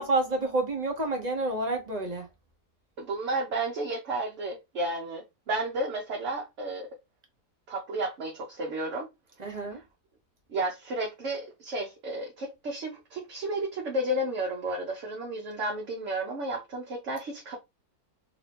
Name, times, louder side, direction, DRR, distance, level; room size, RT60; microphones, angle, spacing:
voice 1, 0.0-2.3 9.4-9.8, right 2 dB, 35° right, 0.8 m, -29 dB
voice 2, 3.0-6.9 7.7-9.1 10.5-17.6, right 1 dB, 55° right, 1.0 m, -32 dB
3.0 x 2.7 x 3.2 m
omnidirectional pair, 1.7 m